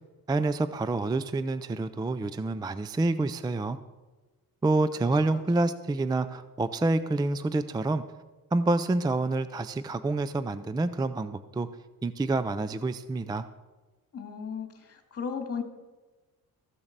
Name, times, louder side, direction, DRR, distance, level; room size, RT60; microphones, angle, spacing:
voice 1, 0.3-3.8 4.6-8.0 8.5-11.7 12.0-13.4, right 2 dB, 10° right, 13 dB, 0.4 m, -27 dB
voice 2, 14.1-15.6, left 6 dB, 40° left, 5 dB, 2.2 m, -35 dB
14.5 x 7.0 x 6.6 m, 1.2 s
cardioid pair, 105°, 37 cm